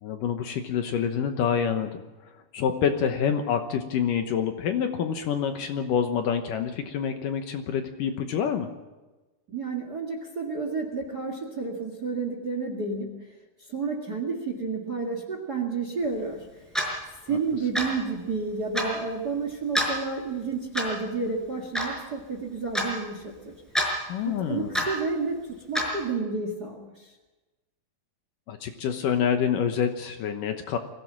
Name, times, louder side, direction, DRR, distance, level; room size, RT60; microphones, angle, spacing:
voice 1, 0.0-2.0 2.5-8.7 17.3-17.4 24.1-24.8 28.5-30.8, left 7 dB, 70° left, 6 dB, 2.4 m, -27 dB
voice 2, 9.5-13.2 13.7-16.6 17.2-23.5 24.2-27.1, right 4 dB, 35° right, 4 dB, 1.7 m, -31 dB
Clock, 16.7-16.9 17.7-18.0 18.7-18.9 19.7-19.9 20.7-21.0 21.7-21.9 22.7-22.9 23.7-23.9 24.7-24.9 25.7-25.9, equal, ahead, 5.1 m, -26 dB
23.0 x 16.0 x 7.5 m, 1.2 s
omnidirectional pair, 4.5 m